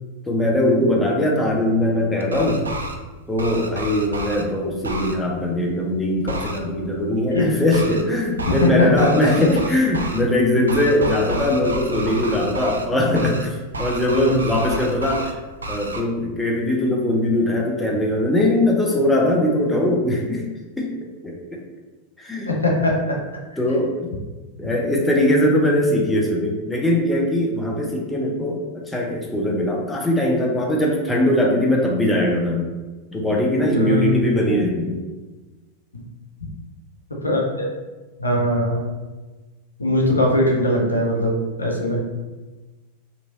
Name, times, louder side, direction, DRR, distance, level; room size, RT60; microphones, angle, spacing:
voice 1, 0.3-2.6 3.3-15.3 15.7-20.4 20.8-20.9 21.2-21.6 22.2-22.5 23.6-24.1 24.6-32.7 33.1-35.0, left 1 dB, 10° left, -2 dB, 0.5 m, -21 dB
sound 1, 2.2-2.9 3.4-4.4 4.8-5.1 6.3-6.6 7.7-8.0 8.4-8.7 9.0-10.2 10.7-12.9 13.1-13.5 13.7-15.3 15.6-16.0, right 1 dB, 75° right, 0.3 m, -30 dB
voice 2, 8.4-9.3 14.1-14.4 22.5-23.2 33.7-34.1 35.9-36.0 37.2-37.4 38.2-38.9 39.8-42.0, left 1 dB, 80° left, -1 dB, 0.6 m, -20 dB
3.0 x 2.6 x 2.5 m, 1.2 s
figure-of-eight pair, 90°, 0 cm